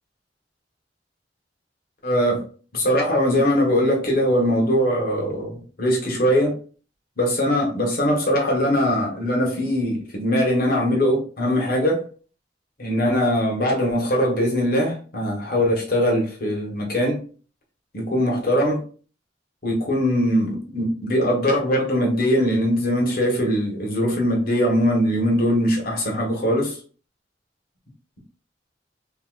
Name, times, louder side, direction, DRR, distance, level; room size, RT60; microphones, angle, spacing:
voice 1, 2.0-2.4 2.7-6.5 7.2-12.0 12.8-17.2 17.9-18.8 19.6-26.8, equal, 55° left, 1.2 m, -21 dB
3.6 x 2.7 x 2.2 m
head